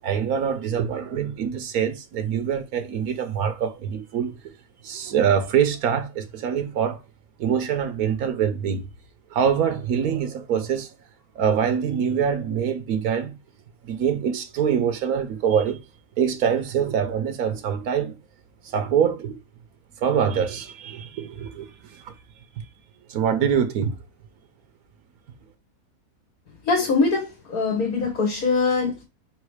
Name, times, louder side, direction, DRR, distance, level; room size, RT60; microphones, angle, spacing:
voice 1, 0.0-4.4 4.8-7.0 7.4-8.9 9.3-10.9 11.3-13.4 13.8-15.8 16.2-18.2 18.6-19.4 20.0-22.1 22.6-22.7 23.1-24.0, right 8 dB, 90° right, 1.3 m, -24 dB
voice 2, 26.7-29.0, left 4 dB, 85° left, 2.0 m, -22 dB
4.9 x 4.1 x 4.8 m
omnidirectional pair, 1.5 m